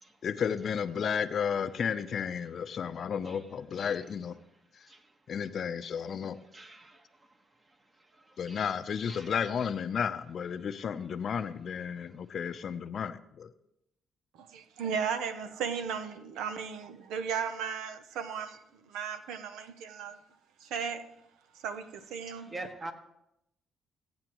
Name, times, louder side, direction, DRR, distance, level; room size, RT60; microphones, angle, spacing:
voice 1, 0.2-4.4 4.7-4.9 5.3-6.4 8.4-13.5, left 7 dB, 55° left, 0.6 m, -33 dB
voice 2, 6.5-7.0 8.1-8.6 9.1-9.3 22.4-22.9, right 2 dB, 30° right, 1.4 m, -44 dB
voice 3, 14.4-18.6 18.9-20.2 20.6-21.1 21.6-22.5, right 7 dB, 90° right, 0.7 m, -35 dB
16.5 x 8.7 x 3.0 m
cardioid pair, 90°, 0 cm